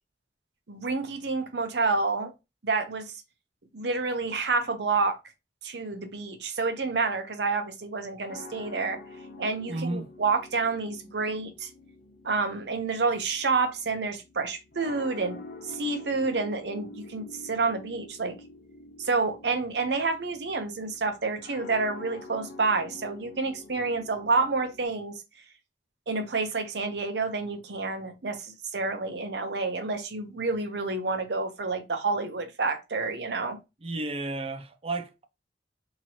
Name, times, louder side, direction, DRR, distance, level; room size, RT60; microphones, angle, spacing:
voice 1, 0.7-2.3 2.6-3.1 3.7-5.2 5.6-9.0 9.4-11.7 12.2-15.4 15.6-18.3 19.0-25.1 26.1-33.6, right 4 dB, 70° right, 0.8 m, -29 dB
sound 1, 8.3-24.8, left 2 dB, 55° left, 0.6 m, -47 dB
voice 2, 9.7-10.1 33.8-35.3, right 2 dB, 35° right, 0.5 m, -32 dB
3.0 x 2.9 x 4.1 m
head